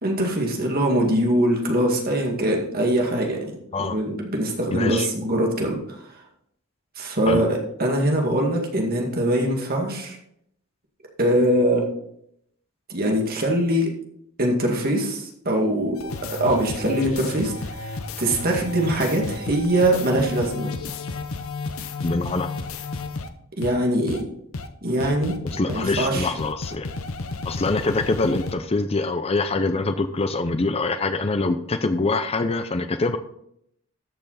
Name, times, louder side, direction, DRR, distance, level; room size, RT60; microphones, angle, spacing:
voice 1, 0.0-3.5 3.8-5.8 7.0-10.2 11.2-11.9 12.9-13.9 14.4-16.0 16.3-20.7 23.6-24.2 24.8-25.3 25.7-26.3, right 1 dB, 45° right, 1 dB, 2.2 m, -22 dB
voice 2, 4.7-5.1 7.3-7.4 22.0-22.5 25.5-26.9 27.5-33.2, left 3 dB, 25° left, 9 dB, 0.5 m, -24 dB
sound 1, 16.0-23.3 23.6-23.7 24.1-24.2 24.5-24.7 25.0-28.5, left 3 dB, 65° left, 0.9 m, -32 dB
13.5 x 6.1 x 4.1 m, 0.72 s
head